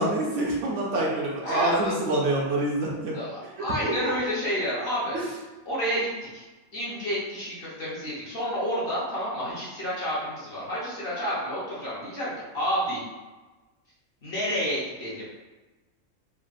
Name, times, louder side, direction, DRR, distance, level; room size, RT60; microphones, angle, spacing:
voice 1, 0.0-3.1 3.8-3.9 5.1-5.2, right 1 dB, 65° right, -3 dB, 0.9 m, -26 dB
voice 2, 1.4-2.1 3.1-5.2 5.7-6.4 6.7-13.0 14.2-15.4, equal, 50° left, -8 dB, 0.8 m, -30 dB
3.4 x 2.3 x 2.4 m, 1.2 s
omnidirectional pair, 1.5 m